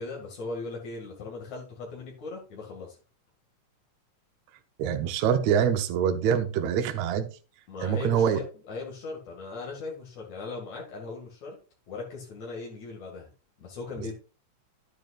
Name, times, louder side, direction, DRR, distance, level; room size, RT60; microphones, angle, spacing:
voice 1, 0.0-3.0 7.7-11.6 11.9-13.3 13.6-14.1, left 3 dB, 75° left, 3.6 m, -38 dB
voice 2, 4.8-7.3 7.8-8.4, right 8 dB, 75° right, 2.1 m, -25 dB
11.5 x 9.2 x 2.5 m
omnidirectional pair, 3.3 m